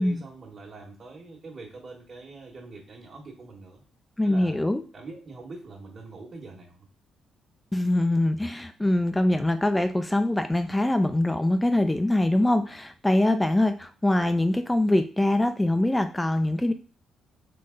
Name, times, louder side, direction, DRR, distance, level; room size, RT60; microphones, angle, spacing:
voice 1, 0.0-3.8 4.2-4.6 4.9-6.9, right 3 dB, 40° right, -2 dB, 1.3 m, -44 dB
voice 2, 4.2-4.8 7.7-16.7, left 1 dB, 10° left, 8 dB, 0.3 m, -23 dB
3.9 x 3.2 x 3.8 m, 0.38 s
cardioid pair, 90°, 0 cm